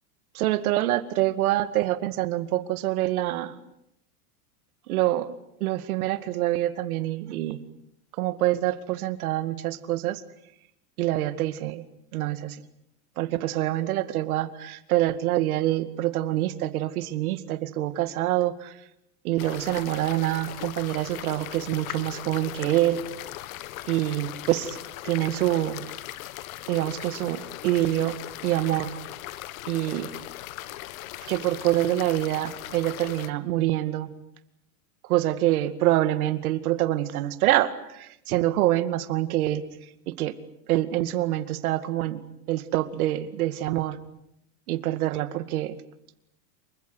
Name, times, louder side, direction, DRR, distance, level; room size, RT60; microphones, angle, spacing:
voice 1, 0.3-3.5 4.9-5.3 5.6-7.6 8.1-10.2 11.0-11.8 12.1-12.6 13.2-18.8 19.2-23.0 23.9-24.8 25.0-25.8 26.7-28.2 28.4-28.9 29.7-30.1 31.2-34.1 35.0-39.6 40.1-40.3 40.7-44.0 44.7-45.8, right 15 dB, 65° right, 12 dB, 2.3 m, -26 dB
sound 1, 19.4-33.3, left 15 dB, 60° left, 1.6 m, -39 dB
28.5 x 24.5 x 8.0 m, 0.79 s
supercardioid pair, 150°, 46 cm